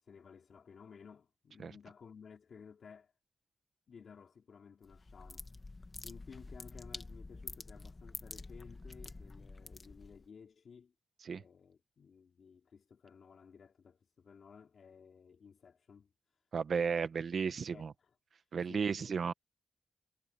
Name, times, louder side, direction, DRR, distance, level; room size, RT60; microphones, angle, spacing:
voice 1, 0.0-3.1 3.9-5.5 6.0-10.9 11.3-16.1 17.7-18.1 18.7-19.3, left 6 dB, 75° left, 3.9 m, -56 dB
sound 1, 4.8-10.3, left 3 dB, 35° left, 1.4 m, -48 dB
voice 2, 16.5-17.9 18.5-19.3, right 6 dB, 75° right, 1.3 m, -34 dB
cardioid pair, 80°, 0 cm